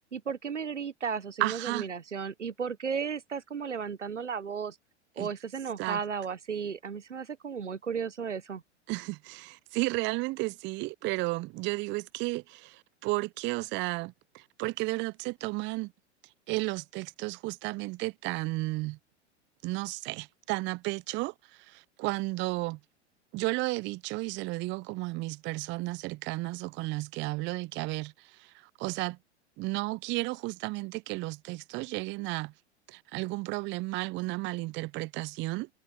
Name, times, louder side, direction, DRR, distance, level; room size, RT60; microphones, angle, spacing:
voice 1, 0.1-4.8 5.2-8.6, right 6 dB, 85° right, 1.2 m, -34 dB
voice 2, 1.4-1.9 5.2-5.3 5.8-6.0 8.9-15.9 16.5-19.0 19.6-22.8 23.3-29.2 29.6-32.5 32.9-35.7, right 23 dB, 35° right, 0.8 m, -33 dB
figure-of-eight pair, 95°, 35 cm